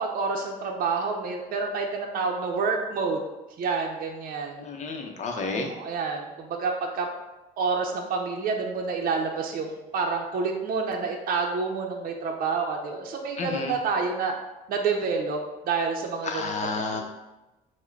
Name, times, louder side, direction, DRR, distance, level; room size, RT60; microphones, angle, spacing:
voice 1, 0.0-3.2 3.6-4.7 5.6-7.1 7.6-14.3 14.7-16.5 16.9-17.0, right 4 dB, 60° right, 1 dB, 0.6 m, -28 dB
voice 2, 4.6-5.7 13.4-13.7 16.2-17.0, left 4 dB, 45° left, 3 dB, 0.7 m, -31 dB
4.6 x 2.2 x 4.5 m, 1.0 s
cardioid pair, 110°, 17 cm